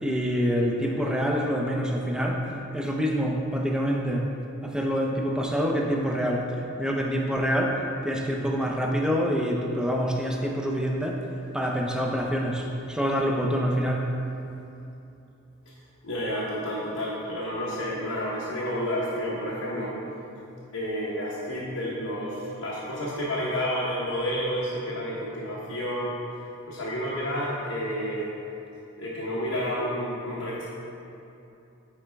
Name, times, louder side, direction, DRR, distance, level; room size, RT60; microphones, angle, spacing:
voice 1, 0.0-2.5 2.7-4.3 4.6-6.5 6.8-11.2 11.5-14.1, equal, 5° right, 0 dB, 0.6 m, -26 dB
voice 2, 16.0-20.0 20.7-26.2 26.7-28.3 28.9-30.7, equal, 90° left, -7 dB, 1.1 m, -30 dB
9.9 x 4.3 x 3.4 m, 2.8 s
head